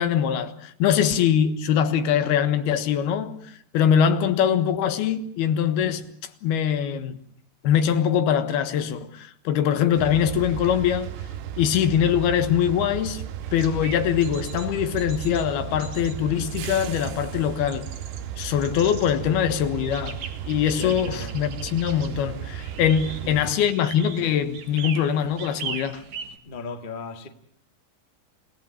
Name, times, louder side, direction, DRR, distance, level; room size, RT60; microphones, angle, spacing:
voice 1, 0.0-6.1 6.4-7.2 7.6-11.1 11.6-13.2 13.5-17.9 18.4-26.0, left 9 dB, 75° left, 3.3 m, -23 dB
sound 1, 10.0-23.5, right 10 dB, 85° right, 3.3 m, -35 dB
sound 2, 13.4-26.4, right 6 dB, 50° right, 2.8 m, -41 dB
voice 2, 20.8-21.3 23.0-23.5 26.4-27.3, left 3 dB, 40° left, 0.7 m, -37 dB
29.0 x 17.5 x 8.7 m
omnidirectional pair, 4.6 m